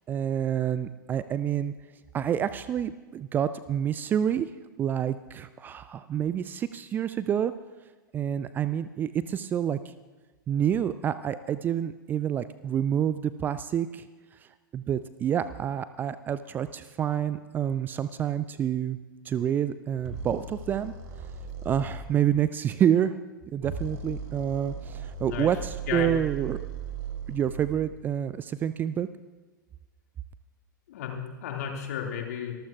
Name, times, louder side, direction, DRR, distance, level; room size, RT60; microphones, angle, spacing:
voice 1, 0.1-1.7 2.1-4.5 4.8-7.5 8.1-9.9 10.5-14.1 14.4-19.0 19.2-20.9 21.6-23.2 23.5-26.7 27.3-29.1, right 9 dB, 15° right, 14 dB, 0.3 m, -28 dB
sound 1, 20.0-22.1 23.5-27.9, right 4 dB, 45° right, 1.9 m, -38 dB
voice 2, 30.9-32.5, left 8 dB, 50° left, 2 dB, 2.2 m, -33 dB
24.0 x 14.5 x 2.4 m, 1.3 s
figure-of-eight pair, 100°, 11 cm